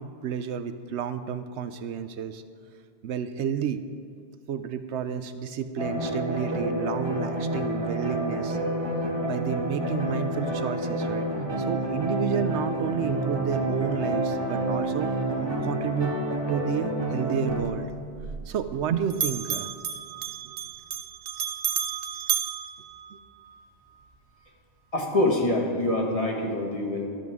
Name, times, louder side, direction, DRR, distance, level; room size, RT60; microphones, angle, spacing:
voice 1, 0.0-2.4 3.0-3.8 4.5-8.6 9.2-11.3 11.6-15.1 15.6-16.2 16.5-17.9 18.5-19.7 20.4-20.5, right 8 dB, 75° right, 11 dB, 0.8 m, -31 dB
sound 1, 5.8-17.6, right 1 dB, 20° right, 1.7 m, -29 dB
Bell, 17.5-18.9 19.1-23.6, right 9 dB, 90° right, 1.1 m, -32 dB
voice 2, 24.9-27.1, left 1 dB, 30° left, -1 dB, 1.8 m, -25 dB
14.0 x 12.5 x 3.6 m, 2.4 s
omnidirectional pair, 1.2 m